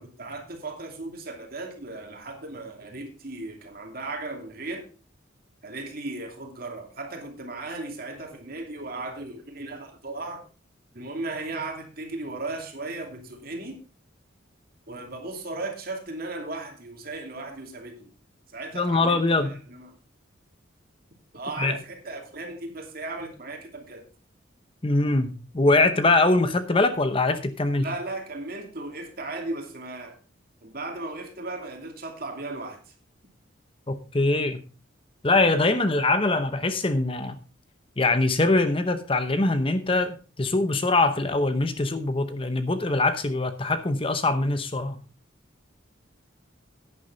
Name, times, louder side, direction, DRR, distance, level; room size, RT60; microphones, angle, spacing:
voice 1, 0.0-4.8 5.6-10.4 10.9-13.7 14.9-18.1 18.5-19.9 21.3-24.0 27.8-30.2 30.6-32.8, right 2 dB, 50° right, 2.7 m, -36 dB
voice 2, 18.7-19.6 21.6-21.8 24.8-27.9 33.9-34.6 35.2-37.4 38.0-45.0, left 2 dB, 25° left, 0.8 m, -23 dB
11.0 x 9.7 x 3.9 m
head